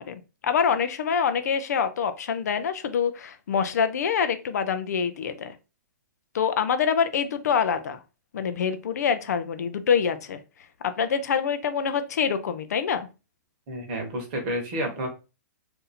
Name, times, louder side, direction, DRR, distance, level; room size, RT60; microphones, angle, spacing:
voice 1, 0.0-5.5 6.3-8.0 8.3-10.4 10.8-13.1, left 7 dB, 55° left, 11 dB, 0.4 m, -25 dB
voice 2, 13.7-15.1, equal, 30° right, 2 dB, 1.0 m, -30 dB
2.6 x 2.5 x 4.0 m, 0.30 s
hypercardioid pair, 170°, 10 cm